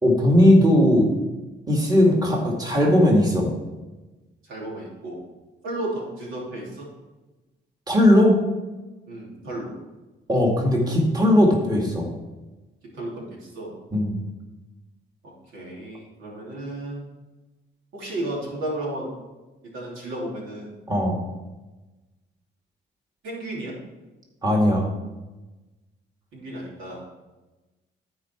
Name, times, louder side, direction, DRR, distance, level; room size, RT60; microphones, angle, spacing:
voice 1, 0.0-1.1 1.7-3.5 7.9-8.4 10.3-12.1 13.9-14.2 20.9-21.2 24.4-24.9, left 1 dB, 20° right, -1 dB, 2.2 m, -18 dB
voice 2, 4.4-5.2 5.6-6.9 9.1-9.8 12.9-13.7 15.5-17.1 17.9-19.1 19.6-20.7 23.2-23.7 26.3-27.0, right 1 dB, 85° right, -4 dB, 3.0 m, -33 dB
14.0 x 4.9 x 4.5 m, 1.1 s
cardioid pair, 90°, 20 cm